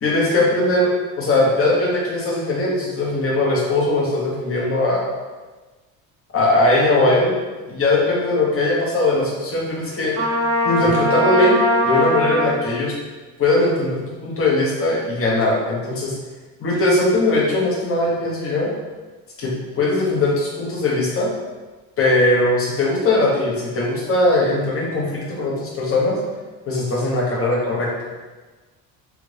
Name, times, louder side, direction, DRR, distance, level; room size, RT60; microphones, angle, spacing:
voice 1, 0.0-0.9 1.1-5.1 6.3-7.3 7.7-10.1 10.6-11.6 11.8-12.9 13.4-16.1 16.6-18.7 19.4-21.3 22.0-26.2 26.7-28.1, left 2 dB, 35° left, -3 dB, 1.0 m, -20 dB
Trumpet, 10.1-12.7, left 1 dB, 70° right, 1.4 m, -20 dB
3.4 x 2.5 x 3.2 m, 1.3 s
cardioid pair, 105°, 38 cm